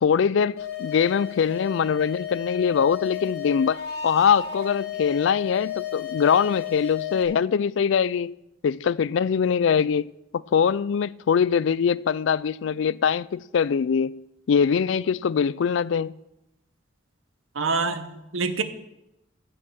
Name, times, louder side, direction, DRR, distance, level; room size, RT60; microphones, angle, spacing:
voice 1, 0.0-3.8 4.0-8.3 8.6-10.1 10.5-14.2 14.5-16.1, left 7 dB, 70° left, 0.3 m, -22 dB
sound 1, 0.6-7.2, left 9 dB, 55° left, 2.6 m, -33 dB
voice 2, 17.5-18.6, right 4 dB, 80° right, 1.0 m, -26 dB
15.0 x 7.2 x 6.3 m
head